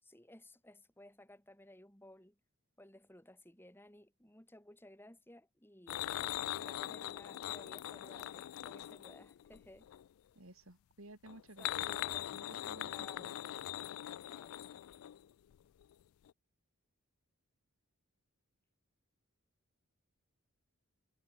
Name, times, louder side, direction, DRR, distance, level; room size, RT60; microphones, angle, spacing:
voice 1, 0.0-2.4 2.8-6.0 6.5-9.9 11.8-12.3 12.9-13.4 14.3-14.6, left 1 dB, 10° left, 4.7 m, -58 dB
sound 1, 5.9-10.1 11.3-15.6 15.8-15.9 16.3-16.4, left 13 dB, 70° left, 0.3 m, -41 dB
voice 2, 10.3-13.3, right 1 dB, 70° right, 3.2 m, -56 dB
head